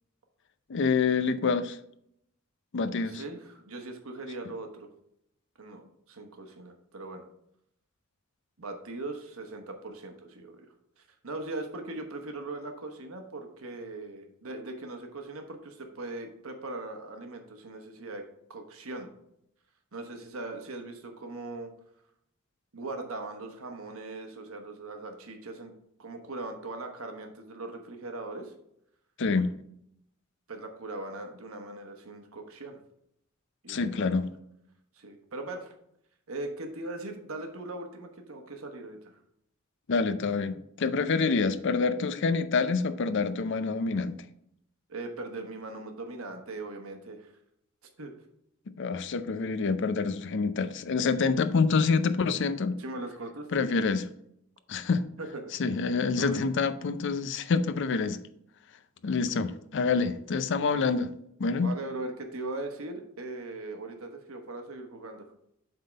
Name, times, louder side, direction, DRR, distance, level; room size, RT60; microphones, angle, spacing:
voice 1, 0.7-1.8 2.7-3.2 29.2-29.5 33.7-34.3 39.9-44.2 48.8-52.8 53.5-54.1 54.7-55.0 55.6-58.2 59.0-61.1 61.4-61.7, left 4 dB, 60° left, 0.5 m, -27 dB
voice 2, 3.1-4.9 5.6-7.2 8.6-10.7 11.2-18.2 18.5-19.1 19.9-21.7 22.7-25.7 26.0-28.5 30.5-32.8 33.6-34.2 35.0-35.7 36.3-39.2 44.9-47.3 48.0-48.1 52.8-53.6 55.2-55.4 56.1-56.5 61.6-65.2, right 2 dB, 85° right, 1.2 m, -40 dB
7.8 x 3.7 x 5.2 m
head